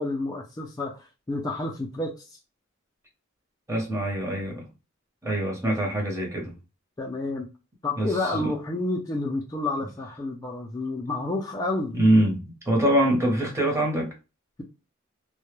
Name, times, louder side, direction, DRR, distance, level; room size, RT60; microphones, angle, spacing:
voice 1, 0.0-2.4 7.0-7.5 7.8-12.0, left 2 dB, 20° left, 0.3 m, -30 dB
voice 2, 3.7-4.6 5.2-6.6 7.9-8.5 11.9-14.1, right 1 dB, 15° right, 0.8 m, -24 dB
2.1 x 2.1 x 3.0 m
head